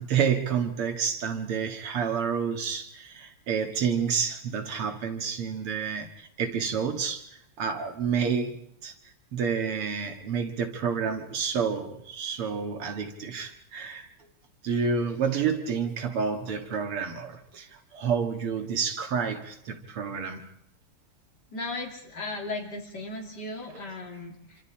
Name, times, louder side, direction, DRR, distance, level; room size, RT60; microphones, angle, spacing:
voice 1, 0.0-7.2 7.6-8.9 9.3-14.1 14.6-20.5 23.7-23.8, right 6 dB, 80° right, 5 dB, 2.7 m, -29 dB
voice 2, 21.5-24.6, left 2 dB, 50° left, 1 dB, 3.7 m, -36 dB
27.0 x 25.5 x 4.4 m, 0.75 s
omnidirectional pair, 2.4 m